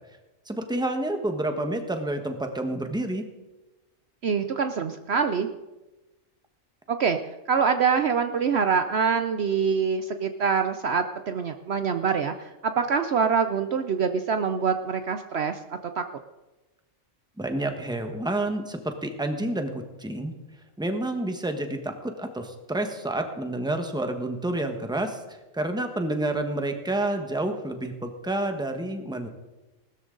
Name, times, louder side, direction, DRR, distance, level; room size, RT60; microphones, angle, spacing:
voice 1, 0.5-3.3 17.4-20.3 20.8-29.3, right 1 dB, 5° right, 5 dB, 1.2 m, -29 dB
voice 2, 4.2-5.5 6.9-7.2 7.5-15.6 16.0-16.1, right 6 dB, 60° right, 7 dB, 0.9 m, -25 dB
19.5 x 13.5 x 3.9 m, 1.1 s
omnidirectional pair, 1.4 m